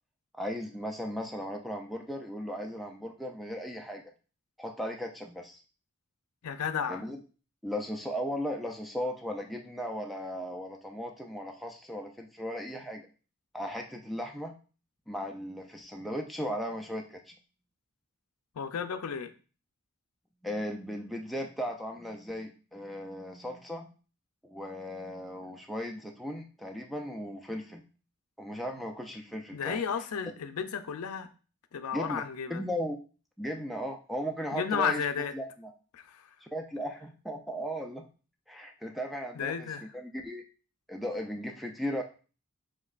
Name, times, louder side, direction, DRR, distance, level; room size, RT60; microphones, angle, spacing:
voice 1, 0.3-4.0 4.6-5.6 6.9-7.2 7.6-13.1 13.5-14.5 15.1-17.3 20.4-23.9 24.4-27.8 28.4-29.8 31.9-32.2 32.5-33.0 33.4-35.0 35.3-35.7 36.4-38.1 38.5-39.7 39.9-40.4 40.9-42.0, equal, ahead, 3 dB, 0.4 m, -36 dB
voice 2, 6.4-7.0 18.6-19.3 29.5-31.3 31.7-32.7 34.5-35.3 35.9-36.2 39.4-39.8, left 7 dB, 85° left, 9 dB, 0.5 m, -33 dB
5.2 x 3.6 x 2.4 m, 0.37 s
head